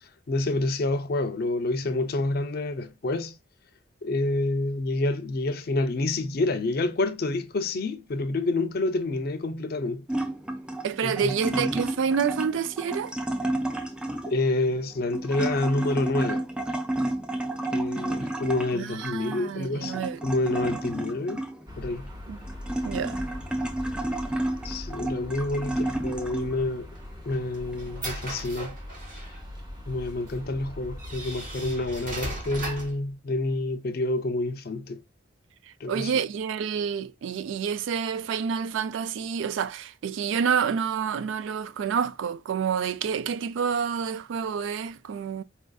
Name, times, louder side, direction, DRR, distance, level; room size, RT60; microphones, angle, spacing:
voice 1, 0.3-3.4 4.0-10.1 11.0-11.7 14.3-16.5 17.7-21.4 21.8-22.1 24.6-26.9 27.3-28.8 29.9-35.0 35.8-36.2, left 2 dB, 55° left, 0.5 m, -28 dB
sound 1, 10.1-26.7 27.2-28.2, right 1 dB, 5° right, 0.4 m, -31 dB
voice 2, 10.8-13.1 18.8-20.2 22.3-22.4 22.9-23.2 35.9-45.4, right 7 dB, 80° right, 0.3 m, -28 dB
sound 2, 21.7-32.7, left 1 dB, 20° right, 0.8 m, -41 dB
sound 3, 27.0-29.4 30.3-30.4 31.0-33.0, right 1 dB, 45° right, 1.2 m, -38 dB
4.3 x 2.5 x 2.3 m
head